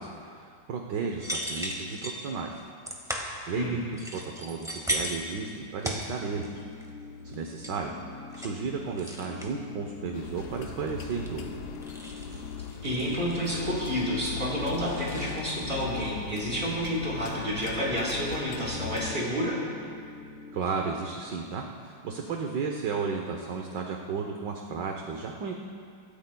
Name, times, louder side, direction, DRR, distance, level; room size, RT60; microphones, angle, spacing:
voice 1, 0.0-2.6 3.5-6.6 7.2-7.9 8.3-11.6 20.5-25.5, right 5 dB, 65° right, 2 dB, 1.4 m, -34 dB
sound 1, 1.2-2.2 2.8-3.4 4.0-5.4 5.8-6.5 6.8-7.0 7.3-7.7 8.1-8.6 9.0-9.5 10.4-11.5 11.7-14.2 14.5-15.5, right 1 dB, ahead, 1.3 m, -36 dB
sound 2, 6.1-20.6, left 4 dB, 50° right, 2.5 m, -44 dB
sound 3, 10.1-19.1, left 7 dB, 65° left, 1.1 m, -41 dB
voice 2, 12.8-19.6, equal, 25° right, -7 dB, 4.2 m, -29 dB
25.5 x 14.0 x 2.3 m, 2.3 s
omnidirectional pair, 2.2 m